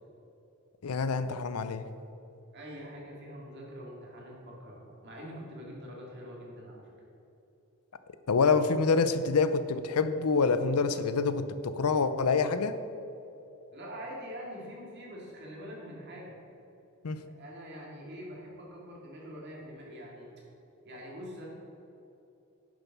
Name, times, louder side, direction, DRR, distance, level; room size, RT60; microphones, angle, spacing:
voice 1, 0.8-1.8 8.3-12.8 17.0-17.2, left 4 dB, 80° left, 11 dB, 0.6 m, -26 dB
voice 2, 2.5-6.9 13.7-16.4 17.2-20.3 20.8-21.5, equal, 50° right, -3 dB, 2.5 m, -44 dB
10.5 x 6.7 x 6.0 m, 2.9 s
head